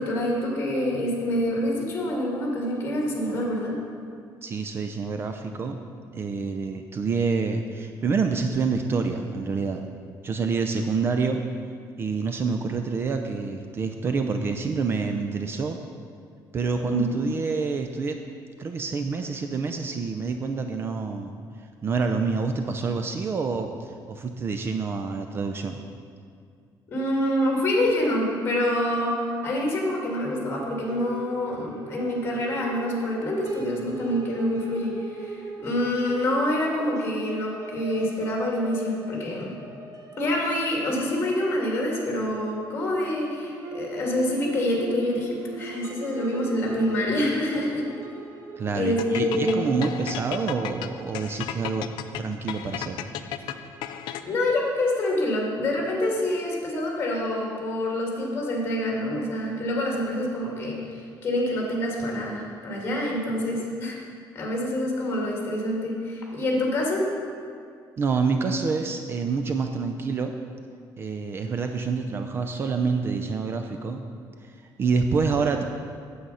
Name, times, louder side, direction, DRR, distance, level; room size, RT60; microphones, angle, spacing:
voice 1, 0.0-3.8 16.8-17.2 26.9-39.6 40.2-47.9 48.7-49.6 54.2-64.0 64.3-67.1, left 1 dB, 30° left, -2 dB, 2.3 m, -26 dB
voice 2, 4.4-5.8 6.1-9.8 10.2-11.4 12.0-15.8 16.5-18.2 18.6-21.3 21.8-25.8 48.6-51.9 52.2-53.0 68.0-70.3 71.0-74.0 74.8-75.6, right 4 dB, 30° right, 6 dB, 0.4 m, -27 dB
sound 1, 30.8-50.7, right 3 dB, 45° right, 1.0 m, -41 dB
sound 2, 49.0-54.5, left 11 dB, 80° left, 0.5 m, -34 dB
8.9 x 7.9 x 5.5 m, 2.2 s
cardioid pair, 155°, 8 cm